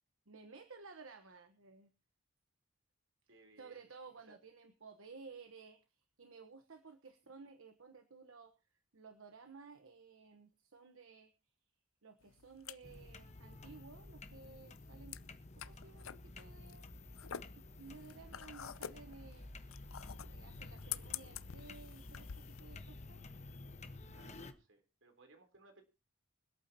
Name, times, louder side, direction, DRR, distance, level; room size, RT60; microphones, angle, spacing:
voice 1, 0.3-1.9 3.6-8.5 8.9-11.3 12.0-15.2 15.5-16.9 17.6-19.5 20.2-23.2, right 4 dB, 80° right, 9 dB, 1.2 m, -56 dB
voice 2, 3.3-3.8 4.3-4.4 24.1-25.8, right 2 dB, 65° right, 5 dB, 3.8 m, -62 dB
sound 1, 12.2-22.6, left 9 dB, 90° left, 0.7 m, -49 dB
sound 2, 12.8-24.5, left 2 dB, 35° left, 1.2 m, -52 dB
25.5 x 8.7 x 2.9 m, 0.29 s
head